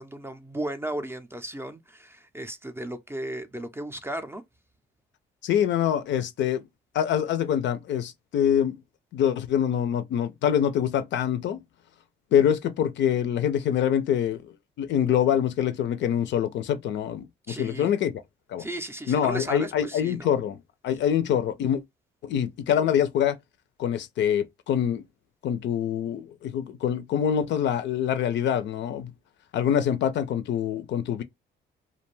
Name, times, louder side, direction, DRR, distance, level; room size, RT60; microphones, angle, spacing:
voice 1, 0.0-4.4 17.5-17.9 18.6-20.3 20.9-21.0, right 1 dB, 10° right, 0.4 m, -35 dB
voice 2, 5.4-6.7 6.9-8.8 9.1-11.6 12.3-18.2 18.5-18.7 19.1-20.6 20.8-21.8 22.2-23.4 23.8-25.0 25.4-29.1 29.5-31.2, left 9 dB, 65° left, 0.4 m, -25 dB
2.4 x 2.2 x 3.1 m
cardioid pair, 90°, 20 cm